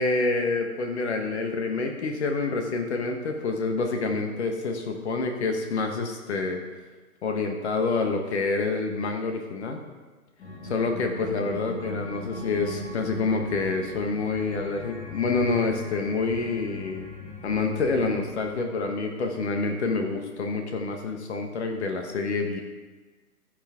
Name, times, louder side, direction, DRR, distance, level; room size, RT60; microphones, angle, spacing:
voice 1, 0.0-6.6 7.2-9.8 10.6-17.1 17.4-22.6, left 3 dB, 45° left, 4 dB, 1.2 m, -27 dB
sound 1, 10.4-18.3, left 3 dB, 15° left, 1.2 m, -39 dB
14.5 x 6.1 x 3.6 m, 1.3 s
figure-of-eight pair, 140°, 45 cm